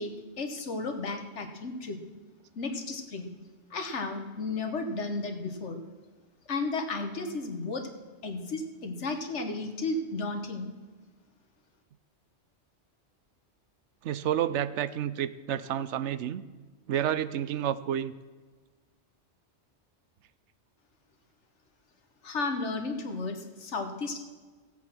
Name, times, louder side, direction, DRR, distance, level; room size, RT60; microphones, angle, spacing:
voice 1, 0.0-2.0 2.5-3.3 3.7-5.8 6.5-7.9 8.2-10.7 22.2-24.2, left 3 dB, 90° left, 6 dB, 1.6 m, -33 dB
voice 2, 14.0-16.4 16.9-18.1, right 10 dB, 85° right, 15 dB, 0.9 m, -30 dB
15.0 x 8.3 x 6.0 m, 1.4 s
omnidirectional pair, 1.2 m